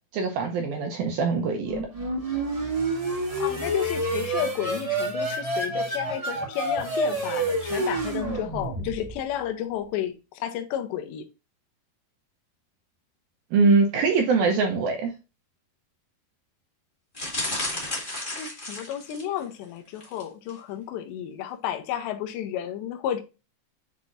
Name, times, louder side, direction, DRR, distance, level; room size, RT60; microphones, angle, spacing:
voice 1, 0.1-1.8 13.5-15.1, right 4 dB, 75° right, 2.2 m, -22 dB
sound 1, 1.6-9.3, right 1 dB, 20° right, 1.0 m, -28 dB
voice 2, 3.4-11.2 18.3-23.2, left 10 dB, 80° left, 2.9 m, -32 dB
sound 2, 17.1-19.4 19.9-20.2 20.5-20.6, left 1 dB, 30° left, 0.9 m, -32 dB
8.0 x 4.8 x 2.6 m
omnidirectional pair, 5.3 m